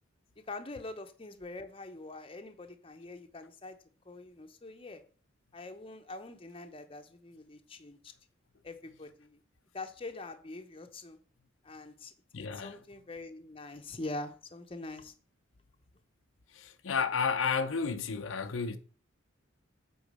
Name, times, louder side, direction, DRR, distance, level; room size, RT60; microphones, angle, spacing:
voice 1, 0.4-3.8 4.0-5.0 5.5-8.1 8.6-9.4 9.7-11.2 11.6-12.1 12.5-15.1, left 2 dB, 30° left, 0.8 m, -44 dB
voice 2, 12.3-12.7 16.5-18.8, left 5 dB, 85° left, 0.7 m, -32 dB
8.2 x 3.9 x 5.4 m
head